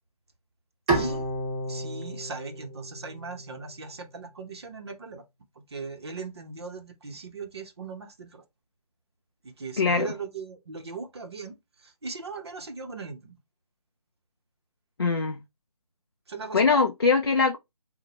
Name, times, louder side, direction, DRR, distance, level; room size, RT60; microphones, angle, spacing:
Bowed string instrument, 0.9-4.1, right 2 dB, 15° right, 1.5 m, -31 dB
voice 1, 0.9-1.3 1.7-5.2 5.6-8.4 9.4-13.4 16.3-16.8, right 4 dB, 40° right, 0.8 m, -39 dB
voice 2, 9.8-10.1 15.0-15.4 16.5-17.6, left 4 dB, 40° left, 0.4 m, -22 dB
6.3 x 2.1 x 2.8 m
figure-of-eight pair, 155°, 20 cm